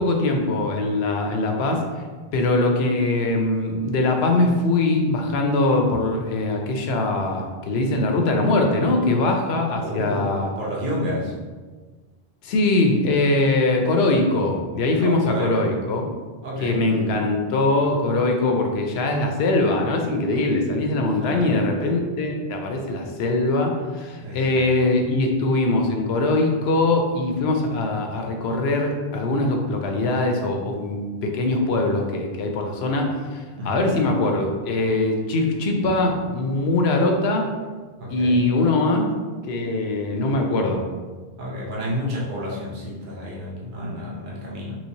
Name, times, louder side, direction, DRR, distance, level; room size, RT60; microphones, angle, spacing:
voice 1, 0.0-1.9 2.3-10.5 12.4-16.1 16.6-37.5 38.1-39.0 39.5-40.8, left 2 dB, 80° left, 3 dB, 0.8 m, -22 dB
voice 2, 9.5-11.3 15.0-15.7 16.4-16.8 21.2-21.6 24.2-24.7 33.5-34.0 38.0-38.5 41.4-44.7, equal, 55° right, -5 dB, 0.9 m, -30 dB
3.1 x 3.1 x 2.7 m, 1.4 s
omnidirectional pair, 1.1 m